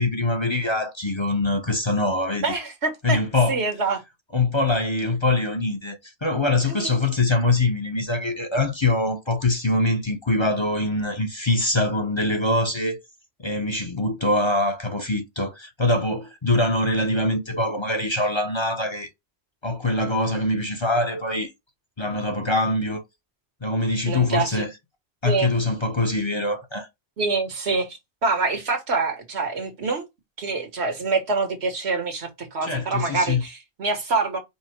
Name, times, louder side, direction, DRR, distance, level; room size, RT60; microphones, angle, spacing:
voice 1, 0.0-2.4 3.0-3.6 4.3-13.0 13.4-19.1 19.6-21.5 22.0-23.0 23.6-24.7 25.2-26.9 32.6-33.4, left 2 dB, 30° left, 0.7 m, -23 dB
voice 2, 2.4-3.2 3.5-4.0 6.7-6.9 24.1-24.6 25.2-25.5 27.2-30.0 30.4-34.4, right 3 dB, 85° right, 1.6 m, -25 dB
5.5 x 2.1 x 4.3 m
omnidirectional pair, 1.1 m